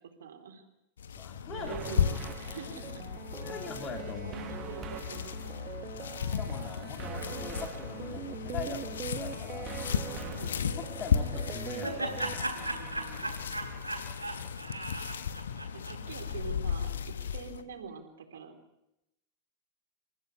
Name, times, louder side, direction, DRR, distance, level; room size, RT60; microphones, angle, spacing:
voice 1, 0.2-0.6 1.5-2.0 2.3-3.0 3.4-3.5 3.8-5.6 10.0-10.9 12.5-13.6 15.7-18.5, right 5 dB, 65° right, 5 dB, 3.9 m, -45 dB
sound 1, 1.0-17.6, left 7 dB, 65° left, 1.3 m, -35 dB
voice 2, 1.1-2.2 2.5-2.6 3.3-4.4 6.2-9.7 10.8-12.5, left 5 dB, 30° left, 3 dB, 3.0 m, -42 dB
sound 2, 1.7-12.3, right 9 dB, 30° right, 1.2 m, -43 dB
Laughter, 11.2-16.4, right 2 dB, 85° right, 3.8 m, -37 dB
29.0 x 15.0 x 8.4 m, 0.87 s
figure-of-eight pair, 90°, 0 cm